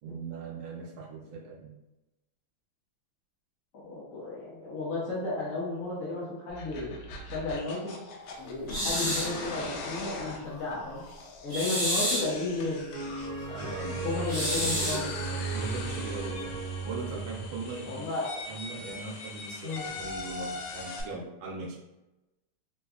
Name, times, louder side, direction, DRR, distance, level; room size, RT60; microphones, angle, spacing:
voice 1, 0.0-1.8 13.5-15.1 15.5-16.6 16.8-18.1 18.5-21.8, right 3 dB, 75° right, 0 dB, 1.4 m, -40 dB
voice 2, 3.7-7.0 7.2-8.0 8.4-11.0 11.4-12.8 13.6-15.4 17.9-18.3 19.6-19.8, left 3 dB, 60° left, -7 dB, 0.9 m, -33 dB
sound 1, 6.5-21.0, left 3 dB, 80° left, 1.4 m, -41 dB
sound 2, 8.7-9.4 11.5-12.4 14.3-15.1, equal, 25° left, 0.4 m, -29 dB
sound 3, 12.9-18.1, right 4 dB, 50° right, 0.9 m, -36 dB
3.3 x 3.1 x 2.3 m, 0.99 s
omnidirectional pair, 2.2 m